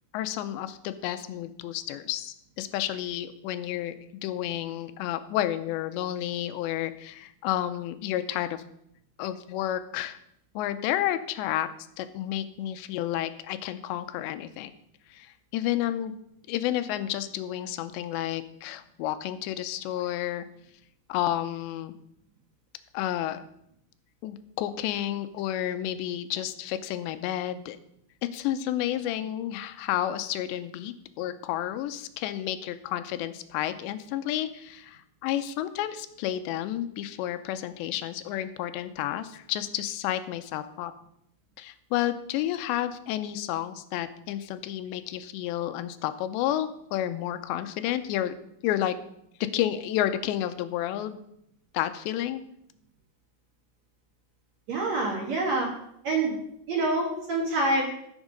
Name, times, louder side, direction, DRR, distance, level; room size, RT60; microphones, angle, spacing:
voice 1, 0.1-4.0 4.2-8.6 9.2-10.2 10.6-11.7 12.0-14.7 15.1-16.1 16.5-20.5 21.1-21.9 22.9-23.4 24.2-27.8 28.3-40.9 41.6-48.3 48.6-49.0 49.5-51.2 51.7-52.4, left 12 dB, 90° left, 11 dB, 2.9 m, -31 dB
voice 2, 54.7-55.7 56.0-56.4 56.7-57.9, right 2 dB, 50° right, 0 dB, 2.3 m, -26 dB
14.5 x 7.2 x 5.3 m, 0.74 s
omnidirectional pair, 5.0 m